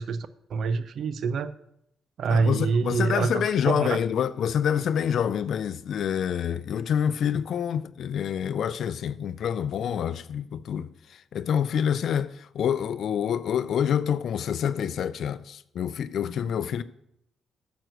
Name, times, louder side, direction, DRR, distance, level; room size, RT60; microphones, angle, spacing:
voice 1, 0.0-1.5 2.2-4.0, right 5 dB, 65° right, 0.6 m, -26 dB
voice 2, 2.3-16.8, left 8 dB, 65° left, 0.4 m, -27 dB
9.1 x 6.2 x 6.4 m
cardioid pair, 90°, 0 cm